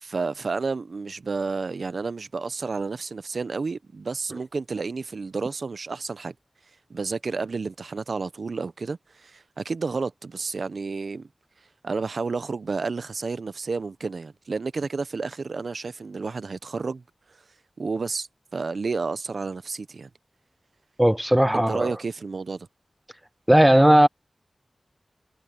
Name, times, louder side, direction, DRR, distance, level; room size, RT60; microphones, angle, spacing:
voice 1, 0.0-6.3 6.9-11.3 11.8-17.0 17.8-20.1 21.5-22.7, right 4 dB, 75° right, 0.8 m, -31 dB
voice 2, 21.0-21.9 23.5-24.1, right 1 dB, 10° right, 0.4 m, -17 dB
wide cardioid pair, 60°, 0 cm